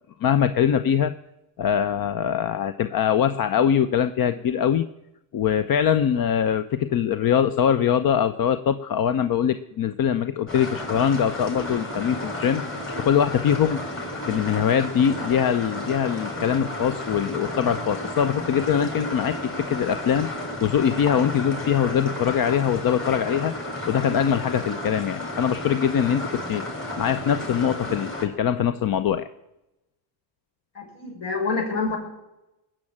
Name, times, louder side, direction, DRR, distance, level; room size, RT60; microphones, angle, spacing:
voice 1, 0.2-1.1 1.6-4.9 5.3-12.7 13.0-13.9 14.3-20.3 20.6-23.5 23.9-26.6 27.0-29.3, left 8 dB, 50° left, 12 dB, 0.8 m, -22 dB
sound 1, 10.5-28.2, left 1 dB, 25° left, 5.5 m, -32 dB
voice 2, 30.7-32.0, left 4 dB, 65° left, 1 dB, 6.4 m, -27 dB
20.0 x 7.6 x 8.8 m, 0.94 s
cardioid pair, 100°, 45 cm